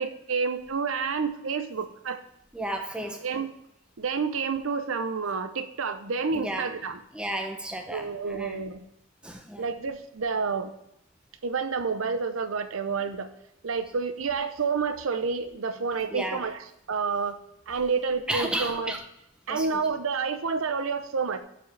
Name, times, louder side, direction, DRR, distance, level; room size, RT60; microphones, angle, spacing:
voice 1, 0.0-2.2 3.2-3.5 4.0-7.0 7.9-8.8 9.6-10.7 11.4-13.3 13.6-17.4 17.7-19.0 19.5-21.4, right 5 dB, 80° right, 10 dB, 0.7 m, -29 dB
voice 2, 2.5-3.2 6.3-6.7 7.1-8.6 9.2-9.6 16.1-16.4 18.3-19.0 19.5-19.8, right 1 dB, 5° right, 3 dB, 0.7 m, -33 dB
12.0 x 4.9 x 3.3 m, 0.80 s
head